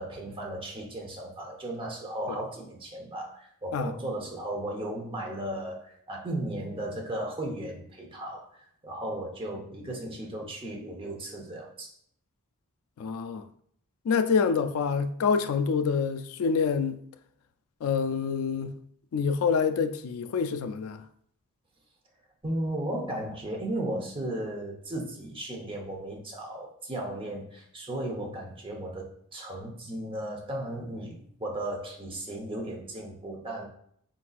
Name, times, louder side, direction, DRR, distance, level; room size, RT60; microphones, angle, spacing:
voice 1, 0.0-8.5 8.8-11.9 22.4-33.7, right 1 dB, 25° right, 0.8 m, -35 dB
voice 2, 13.0-13.4 14.1-17.0 17.8-18.8 19.1-21.0, left 5 dB, 70° left, 0.3 m, -27 dB
4.2 x 4.0 x 2.4 m
head